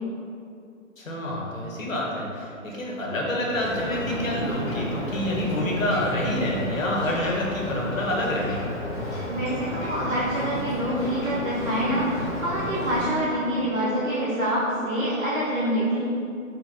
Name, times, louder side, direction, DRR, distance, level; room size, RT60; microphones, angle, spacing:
voice 1, 1.0-8.6, left 1 dB, 70° left, -3 dB, 1.0 m, -27 dB
Ocean, 3.5-13.0, left 1 dB, 20° left, 0.8 m, -32 dB
voice 2, 9.3-16.0, equal, 75° right, -8 dB, 1.0 m, -26 dB
4.0 x 2.1 x 4.2 m, 2.5 s
figure-of-eight pair, 135°, 41 cm